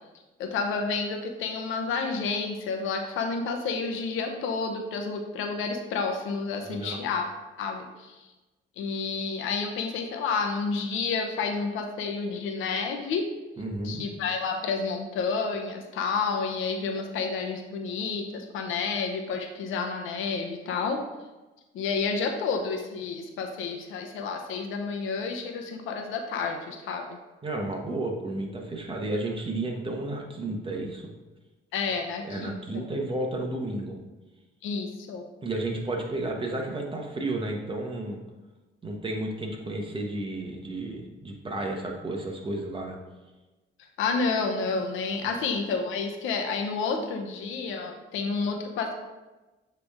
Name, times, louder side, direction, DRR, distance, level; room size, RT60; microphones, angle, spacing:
voice 1, 0.4-7.3 7.6-8.3 8.8-13.3 13.8-21.0 21.7-27.2 31.7-32.8 34.6-35.3 44.0-48.9, left 4 dB, 90° left, 4 dB, 0.8 m, -30 dB
voice 2, 6.6-7.0 13.6-14.0 27.4-31.1 32.2-34.0 35.4-38.2 38.8-43.0 45.2-45.4, right 2 dB, 25° right, 1 dB, 1.2 m, -32 dB
7.9 x 3.4 x 3.6 m, 1.1 s
cardioid pair, 90°, 20 cm